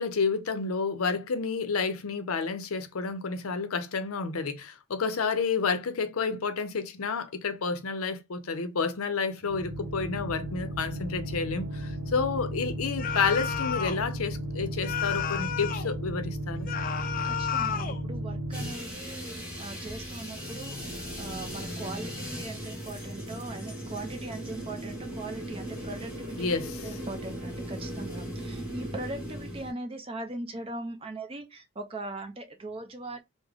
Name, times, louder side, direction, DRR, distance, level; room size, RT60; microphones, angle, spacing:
voice 1, 0.0-16.7 26.4-26.7, left 5 dB, 85° left, 0.6 m, -30 dB
sound 1, 9.4-18.7, equal, 75° right, 0.7 m, -35 dB
sound 2, 13.0-14.1 14.8-15.9 16.7-18.0, left 8 dB, 40° left, 0.4 m, -32 dB
voice 2, 17.2-26.5 26.8-33.2, right 2 dB, 25° right, 0.5 m, -40 dB
sound 3, 18.5-29.7, equal, 5° right, 1.2 m, -38 dB
3.6 x 2.1 x 3.2 m
head